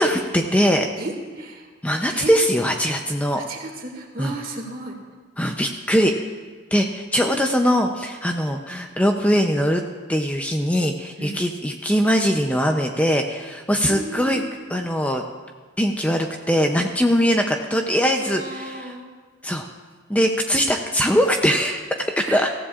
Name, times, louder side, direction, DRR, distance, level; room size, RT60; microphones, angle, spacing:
voice 1, 0.0-0.9 1.8-3.4 4.2-4.3 5.4-6.1 6.7-9.8 10.1-14.4 14.7-15.2 15.8-18.9 19.4-19.7 20.1-22.5, equal, 5° left, 3 dB, 0.5 m, -21 dB
voice 2, 1.0-1.7 2.1-2.3 3.4-5.0 11.2-11.4 13.9-14.4 18.2-19.0 22.2-22.4, right 2 dB, 45° right, 1 dB, 2.0 m, -34 dB
23.5 x 15.0 x 2.5 m, 1.5 s
head